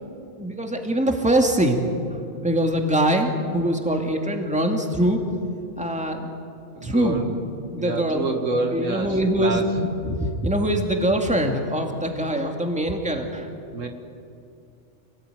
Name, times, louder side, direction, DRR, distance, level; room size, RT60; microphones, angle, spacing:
voice 1, 0.4-1.9 2.4-5.2 5.8-6.3 6.8-7.2 7.7-8.2 8.7-13.5, right 1 dB, 5° right, 2 dB, 2.4 m, -23 dB
voice 2, 6.7-7.4 7.8-9.8 13.7-13.9, right 2 dB, 75° right, 4 dB, 2.2 m, -27 dB
27.5 x 18.5 x 9.3 m, 2.6 s
omnidirectional pair, 1.3 m